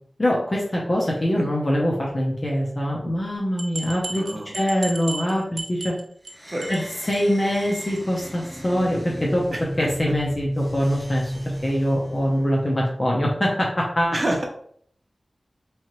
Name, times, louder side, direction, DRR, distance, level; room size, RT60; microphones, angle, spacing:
voice 1, 0.2-4.3 4.5-6.0 6.7-9.5 9.8-11.3 11.6-14.2, equal, 40° left, -3 dB, 0.8 m, -23 dB
sound 1, 3.6-6.3 6.6-6.9 7.1-7.2 7.5-7.6 8.0-8.1, right 3 dB, 80° right, 0.5 m, -34 dB
voice 2, 4.1-4.5 6.5-6.7 9.5-9.9 14.1-14.4, right 1 dB, 35° right, 1 dB, 0.9 m, -27 dB
sound 2, 6.3-12.9, equal, 10° right, 1.7 m, -34 dB
3.7 x 3.1 x 3.1 m, 0.62 s
wide cardioid pair, 80°, 0 cm